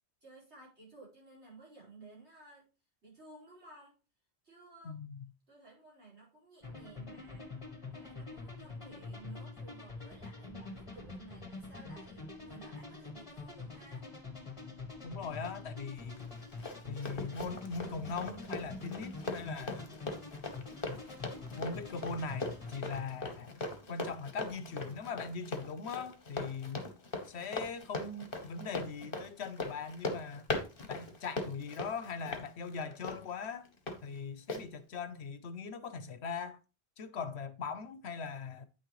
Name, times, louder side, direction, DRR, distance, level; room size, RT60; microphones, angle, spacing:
voice 1, 0.2-2.7 3.0-4.0 4.4-5.0 5.5-7.6 7.9-14.1, right 2 dB, 80° right, 5.0 m, -55 dB
sound 1, 6.6-23.0, left 3 dB, 30° left, 2.1 m, -46 dB
voice 2, 15.0-16.3 16.9-19.9 21.5-23.6 23.9-26.8 27.2-30.5 30.9-33.7 34.0-36.6 37.0-38.7, left 5 dB, 75° left, 1.2 m, -40 dB
Run, 16.2-34.0 34.5-34.6, left 2 dB, 55° left, 1.5 m, -40 dB
9.4 x 6.5 x 3.1 m
omnidirectional pair, 1.1 m